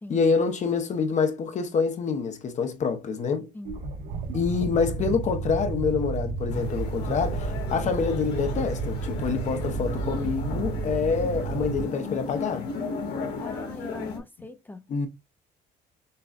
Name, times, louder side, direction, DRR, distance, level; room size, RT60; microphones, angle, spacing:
voice 1, 0.1-3.5 4.3-12.7 14.9-15.1, left 5 dB, 45° left, 0.9 m, -26 dB
sound 1, 3.7-11.0, right 1 dB, 80° right, 1.3 m, -37 dB
sound 2, 4.1-11.9, right 7 dB, 60° right, 0.5 m, -32 dB
sound 3, 6.5-14.2, left 4 dB, 80° left, 1.9 m, -36 dB
voice 2, 13.4-14.8, left 2 dB, 10° left, 0.5 m, -41 dB
6.6 x 2.3 x 2.4 m
cardioid pair, 110°, 17 cm